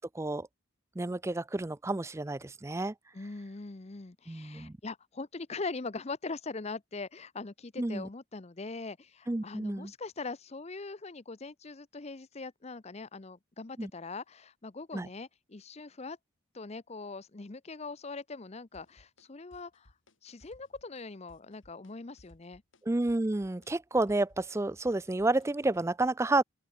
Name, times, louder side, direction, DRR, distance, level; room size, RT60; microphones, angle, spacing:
voice 1, 0.1-0.5 1.0-2.9 4.3-4.7 7.8-8.1 9.3-9.9 13.8-13.9 14.9-15.1 22.9-26.4, right 2 dB, 15° right, 0.4 m, -30 dB
voice 2, 3.1-16.2 16.5-19.9 20.2-22.6, left 3 dB, 30° left, 0.7 m, -42 dB
sound 1, 18.7-19.3 19.5-20.1 20.4-21.0 21.3-21.9 22.2-25.8, left 1 dB, 70° left, 3.2 m, -61 dB
open air
head